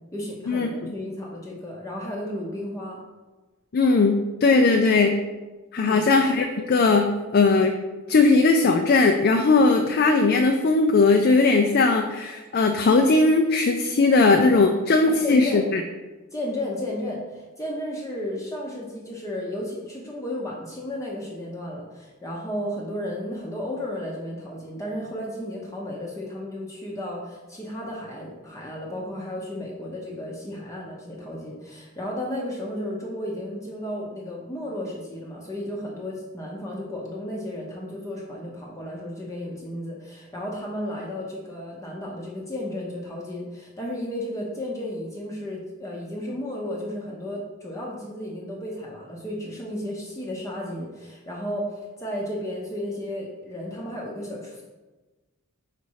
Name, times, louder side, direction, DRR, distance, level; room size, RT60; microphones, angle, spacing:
voice 1, 0.1-3.0 4.5-4.7 5.8-6.0 14.5-14.7 15.1-15.6 16.3-54.6, left 1 dB, 15° left, -3 dB, 0.7 m, -33 dB
voice 2, 3.7-5.1 5.7-7.7 8.1-15.8, left 3 dB, 50° left, 4 dB, 0.4 m, -19 dB
5.1 x 4.2 x 4.7 m, 1.2 s
head